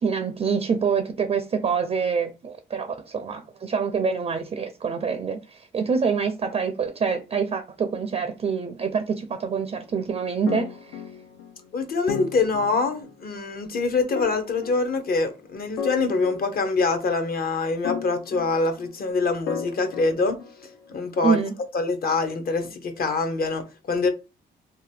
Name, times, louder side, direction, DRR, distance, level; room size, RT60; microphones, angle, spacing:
voice 1, 0.0-11.0 21.2-21.5, right 5 dB, 30° right, 0.4 m, -26 dB
sound 1, 10.5-11.7 12.1-13.2 14.2-15.4 15.8-17.2 17.8-19.0 19.5-20.9, left 6 dB, 85° left, 0.5 m, -35 dB
voice 2, 11.7-20.4 20.9-21.4 21.7-24.1, left 3 dB, 50° left, 0.7 m, -25 dB
2.7 x 2.2 x 3.3 m
cardioid pair, 90°, 20 cm